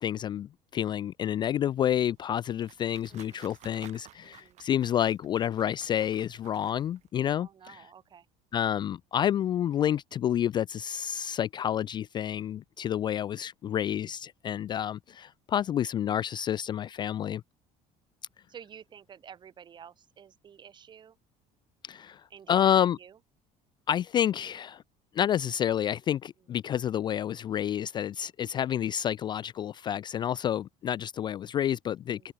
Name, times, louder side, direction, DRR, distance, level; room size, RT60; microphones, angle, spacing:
voice 1, 0.0-7.5 8.5-17.4 21.8-23.0 23.9-24.8 25.1-32.3, left 10 dB, 30° left, 0.3 m, -29 dB
sound 1, 2.2-7.1, right 14 dB, 50° right, 2.6 m, -55 dB
voice 2, 3.1-3.4 4.2-4.6 7.3-8.3 18.5-21.2 22.3-23.2 32.1-32.3, right 8 dB, 30° right, 3.1 m, -51 dB
cardioid pair, 160°, 15 cm